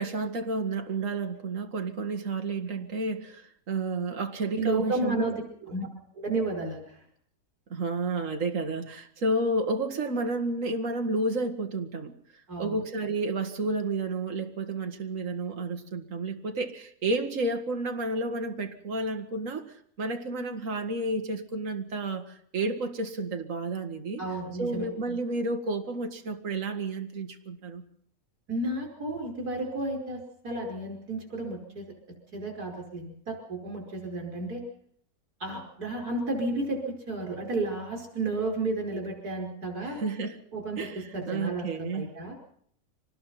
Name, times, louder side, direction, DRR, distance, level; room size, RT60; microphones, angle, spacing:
voice 1, 0.0-5.2 7.7-12.1 12.6-19.6 20.0-22.2 22.5-24.2 24.6-27.8 39.8-40.4 40.8-41.0 41.3-42.1, right 2 dB, 55° right, 5 dB, 2.2 m, -31 dB
voice 2, 4.5-5.4 5.7-5.9 6.1-7.0 12.5-12.8 24.2-24.9 28.5-31.9 32.3-34.6 35.4-40.0 40.5-42.4, right 2 dB, 70° right, 1 dB, 5.9 m, -32 dB
25.5 x 19.5 x 5.8 m, 0.64 s
omnidirectional pair, 1.7 m